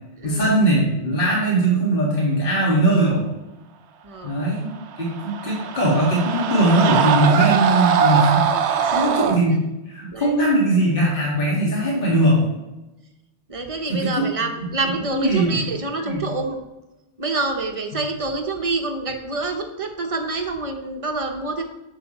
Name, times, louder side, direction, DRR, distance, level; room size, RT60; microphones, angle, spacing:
voice 1, 0.2-3.2 4.2-4.7 5.0-9.6 9.9-12.5 13.9-14.3 15.1-15.6 16.0-16.2, right 1 dB, 50° left, -5 dB, 1.8 m, -20 dB
voice 2, 4.0-4.4 8.8-9.3 10.1-10.4 13.5-16.6 17.2-21.6, right 3 dB, 30° right, 4 dB, 0.8 m, -27 dB
sound 1, 4.9-9.4, right 7 dB, 70° right, 0.9 m, -21 dB
9.8 x 6.2 x 2.9 m, 1.0 s
omnidirectional pair, 1.2 m